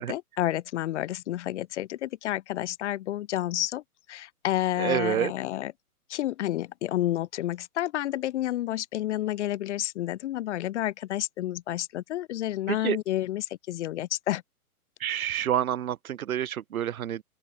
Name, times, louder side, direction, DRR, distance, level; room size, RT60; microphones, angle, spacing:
voice 1, 0.0-3.8 4.1-5.7 6.1-14.4, left 13 dB, 50° left, 0.7 m, -30 dB
voice 2, 4.8-5.3 12.7-13.0 15.0-17.2, right 10 dB, 65° right, 2.0 m, -28 dB
open air
hypercardioid pair, 125°, 46 cm